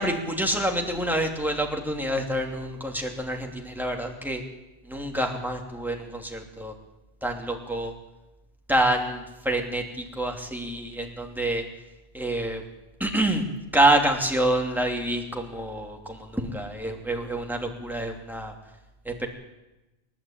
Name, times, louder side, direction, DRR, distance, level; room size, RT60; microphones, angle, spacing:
voice 1, 0.0-4.4 4.9-6.7 7.2-7.9 8.7-11.6 12.1-12.6 13.0-13.4 13.7-18.5 19.0-19.3, right 1 dB, ahead, 2 dB, 2.8 m, -27 dB
28.0 x 12.5 x 8.9 m, 1.0 s
omnidirectional pair, 1.1 m